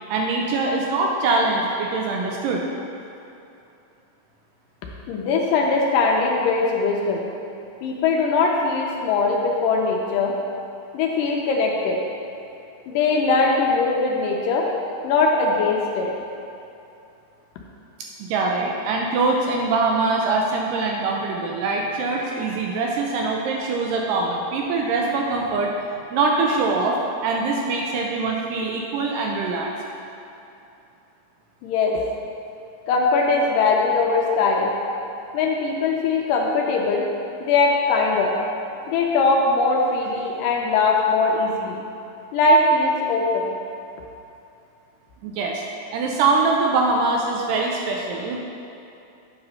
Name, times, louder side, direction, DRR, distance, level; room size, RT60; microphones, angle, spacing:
voice 1, 0.1-2.6 18.0-25.7 26.1-29.7 34.1-34.2 45.2-45.6 45.9-48.4, right 3 dB, 80° right, 0 dB, 2.0 m, -23 dB
voice 2, 5.1-7.3 7.8-10.3 10.9-12.0 12.9-14.7 15.0-16.1 31.6-32.0 32.9-34.7 35.3-37.0 37.4-38.4 38.9-41.8 42.3-43.5, left 3 dB, 80° left, -1 dB, 2.1 m, -20 dB
8.7 x 3.0 x 5.4 m, 2.7 s
omnidirectional pair, 4.2 m